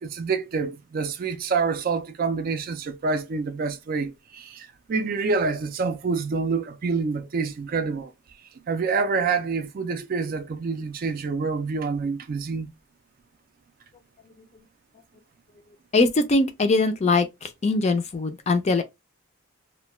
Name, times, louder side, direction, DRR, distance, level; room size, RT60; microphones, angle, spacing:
voice 1, 0.0-8.1 8.7-12.7, right 4 dB, 40° right, 0.3 m, -27 dB
voice 2, 15.9-18.8, left 3 dB, 30° left, 0.4 m, -22 dB
2.2 x 2.1 x 2.9 m
head